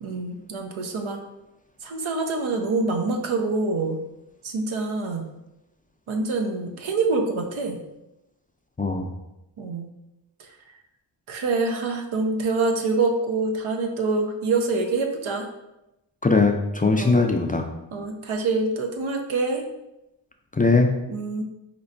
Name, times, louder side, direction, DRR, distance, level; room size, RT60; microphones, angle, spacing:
voice 1, 0.0-1.2 1.8-4.0 4.4-5.2 6.1-7.8 9.6-9.9 11.3-15.5 17.0-17.2 17.9-19.6 21.1-21.4, right 3 dB, 85° right, 3 dB, 0.7 m, -25 dB
voice 2, 8.8-9.1 16.2-17.7 20.5-20.9, left 3 dB, 20° left, 3 dB, 0.3 m, -20 dB
4.2 x 3.0 x 2.6 m, 0.91 s
cardioid pair, 45°, 47 cm